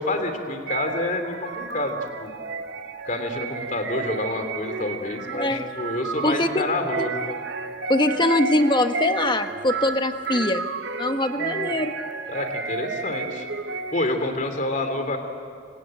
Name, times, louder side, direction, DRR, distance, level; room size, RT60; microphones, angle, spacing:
voice 1, 0.0-2.3 3.0-7.2 11.4-11.7 12.3-13.5 13.9-15.2, left 2 dB, 40° left, 7 dB, 2.9 m, -28 dB
sound 1, 0.7-14.3, right 4 dB, 60° right, 1.3 m, -32 dB
voice 2, 5.3-5.7 6.2-6.7 7.0-7.1 7.9-10.6 11.0-11.9, left 1 dB, 25° left, 7 dB, 1.2 m, -22 dB
26.0 x 25.5 x 8.9 m, 2.4 s
head